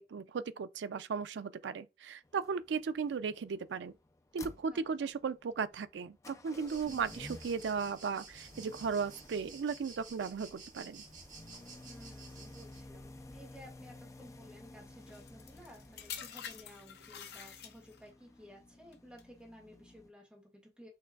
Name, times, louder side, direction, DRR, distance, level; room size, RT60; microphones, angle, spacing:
voice 1, 0.0-3.9 4.3-11.0, right 5 dB, 85° right, 0.4 m, -36 dB
sound 1, 2.2-20.1, left 2 dB, 15° left, 0.4 m, -54 dB
voice 2, 4.7-5.1 6.8-7.1 11.8-20.9, equal, 5° right, 1.5 m, -55 dB
sound 2, 6.7-12.8, right 4 dB, 45° right, 1.4 m, -53 dB
sound 3, 15.1-18.1 18.9-19.2, left 9 dB, 65° left, 0.6 m, -47 dB
5.8 x 3.0 x 2.3 m
head